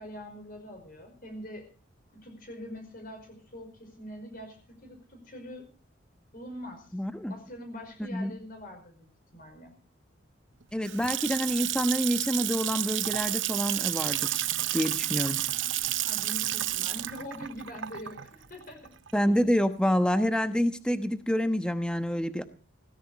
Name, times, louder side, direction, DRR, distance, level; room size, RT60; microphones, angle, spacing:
voice 1, 0.0-1.7 2.1-5.7 6.3-6.9 7.3-9.7 16.0-18.9, equal, 45° left, 4 dB, 5.2 m, -43 dB
voice 2, 6.9-7.3 8.1-8.3 10.7-15.5 19.1-22.4, equal, 5° left, 9 dB, 1.0 m, -27 dB
Water tap faucet / Sink (filling or washing) / Splash splatter, 10.6-19.5, right 14 dB, 70° right, 0.7 m, -31 dB
17.5 x 15.5 x 4.2 m, 0.38 s
head